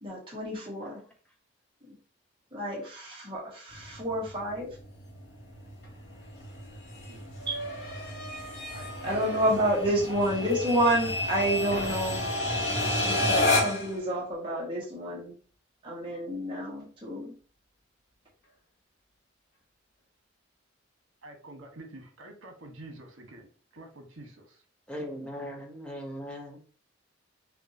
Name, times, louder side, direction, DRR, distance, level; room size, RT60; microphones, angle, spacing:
voice 1, 0.0-1.0 2.5-4.7 7.5-7.6 9.0-12.3 13.0-15.3 15.8-17.3, right 1 dB, 25° right, -5 dB, 1.3 m, -29 dB
sound 1, 3.7-14.0, left 2 dB, 65° left, 1.5 m, -31 dB
sound 2, 5.8-5.9 6.2-11.4 11.7-12.5, right 1 dB, 45° left, 0.9 m, -42 dB
voice 2, 8.7-10.0 21.2-24.6, right 2 dB, 75° right, 2 dB, 1.4 m, -48 dB
voice 3, 24.9-26.6, equal, 5° left, 0 dB, 0.9 m, -39 dB
6.0 x 2.6 x 2.8 m, 0.40 s
head